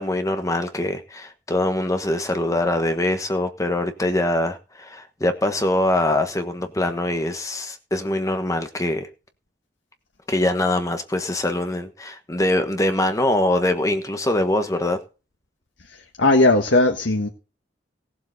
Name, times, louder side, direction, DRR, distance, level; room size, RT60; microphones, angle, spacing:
voice 1, 0.0-9.1 10.3-15.0, left 1 dB, 20° left, 1.2 m, -23 dB
voice 2, 15.9-17.3, left 2 dB, 85° left, 1.5 m, -18 dB
18.0 x 7.7 x 4.1 m
head